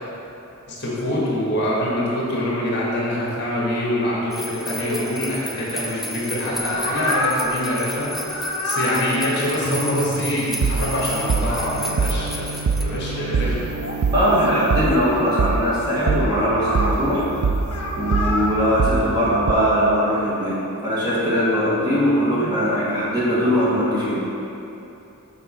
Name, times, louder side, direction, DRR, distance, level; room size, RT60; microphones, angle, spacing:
voice 1, 0.7-13.6, left 1 dB, 50° left, -5 dB, 1.5 m, -25 dB
sound 1, 4.3-12.8, left 1 dB, ahead, 0.4 m, -33 dB
sound 2, 6.6-7.5 8.0-9.0 11.0-11.9 12.8-12.9 13.3-14.0 14.8-15.6 16.3-17.0 17.6-18.5, left 2 dB, 75° left, 0.9 m, -28 dB
sound 3, 9.6-19.5, right 4 dB, 65° right, 0.3 m, -25 dB
voice 2, 14.1-17.4 17.9-24.2, equal, 20° right, -9 dB, 1.5 m, -20 dB
7.1 x 5.1 x 4.3 m, 2.9 s
head